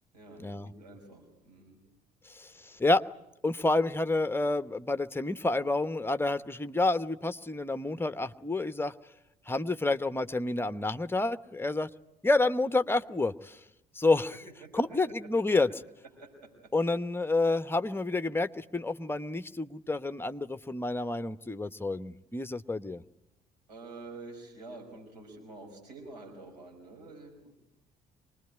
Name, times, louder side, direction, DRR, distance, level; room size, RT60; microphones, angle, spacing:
voice 1, 0.1-1.8 14.6-15.0 16.2-16.5 16.8-17.0 23.7-27.6, right 3 dB, 80° right, 2 dB, 5.7 m, -48 dB
voice 2, 2.3-3.0 3.4-8.9 9.5-11.9 12.2-13.6 13.9-14.3 14.7-15.7 16.7-23.0, left 2 dB, 10° left, 12 dB, 1.1 m, -29 dB
25.0 x 20.5 x 9.9 m, 0.86 s
figure-of-eight pair, 50°, 21 cm